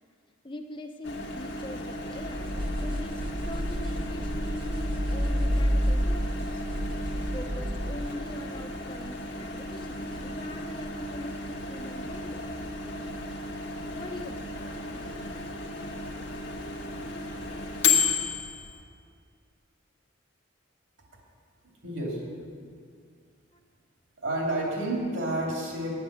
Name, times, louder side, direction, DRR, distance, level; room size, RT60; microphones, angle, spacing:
voice 1, 0.4-6.6 7.3-12.7 14.0-15.2 23.5-23.6, left 1 dB, 25° left, 4 dB, 0.7 m, -42 dB
Microwave oven, 1.0-18.8, left 4 dB, 60° left, 1.1 m, -34 dB
sound 1, 2.2-8.2, equal, 25° right, 0.6 m, -29 dB
voice 2, 21.8-22.2 24.2-25.9, right 1 dB, 70° right, -2 dB, 2.8 m, -30 dB
9.5 x 8.0 x 7.4 m, 2.2 s
head